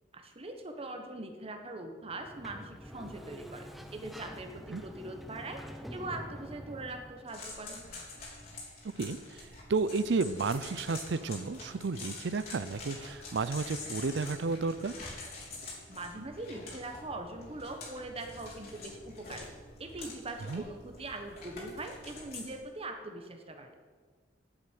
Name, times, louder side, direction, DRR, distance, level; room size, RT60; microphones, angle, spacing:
voice 1, 0.1-5.6 5.9-7.8 15.9-19.5 19.8-23.7, right 2 dB, 30° right, 5 dB, 1.3 m, -42 dB
Sliding door, 2.1-7.4, equal, ahead, 0.7 m, -46 dB
sound 1, 7.3-22.6, left 3 dB, 55° left, 3.5 m, -46 dB
voice 2, 9.0-14.9 20.5-20.6, right 4 dB, 65° right, 14 dB, 0.5 m, -32 dB
8.9 x 7.6 x 9.1 m, 1.5 s
head